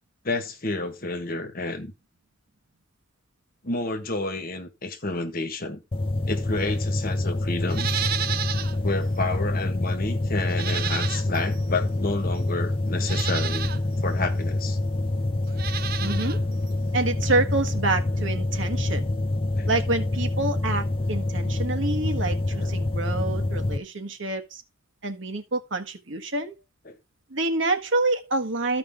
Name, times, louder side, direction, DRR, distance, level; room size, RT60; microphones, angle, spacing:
voice 1, 0.2-1.9 3.6-5.8 6.3-7.9 8.8-13.7 14.0-14.8 19.6-19.7 22.5-22.7 26.9-27.0, left 2 dB, 50° left, 1.4 m, -30 dB
sound 1, 5.9-23.8, left 2 dB, 30° left, 0.5 m, -26 dB
Livestock farm animals working animals, 7.7-8.8 9.2-9.3 10.5-11.5 12.4-12.5 13.0-13.8 15.5-16.4 16.7-16.8, right 10 dB, 50° right, 0.6 m, -31 dB
voice 2, 16.0-16.4 16.9-19.1 19.7-24.6 25.0-26.5 27.3-28.8, right 2 dB, 70° right, 1.4 m, -27 dB
14.0 x 5.0 x 3.7 m
head